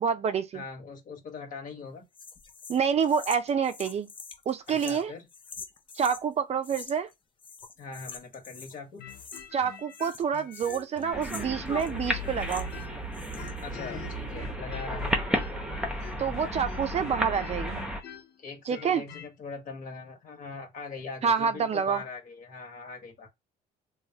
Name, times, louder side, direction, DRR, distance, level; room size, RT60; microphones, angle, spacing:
voice 1, 0.0-0.6 2.7-4.1 4.5-5.1 6.0-7.1 9.5-12.6 16.2-17.8 18.7-19.0 21.2-22.0, right 7 dB, 40° right, 0.5 m, -27 dB
voice 2, 0.5-2.1 4.7-5.2 7.8-9.0 13.6-15.2 18.4-23.3, left 4 dB, 55° left, 1.3 m, -41 dB
sound 1, 2.1-6.2 6.6-7.1 7.4-8.8 9.1-9.6 9.9-12.8 13.1-13.7, left 5 dB, 30° left, 0.6 m, -46 dB
sound 2, 9.0-13.0 13.3-19.3, left 9 dB, 70° left, 0.6 m, -46 dB
sound 3, 11.1-18.0, equal, 5° right, 0.8 m, -33 dB
3.2 x 2.3 x 2.7 m
cardioid pair, 110°, 17 cm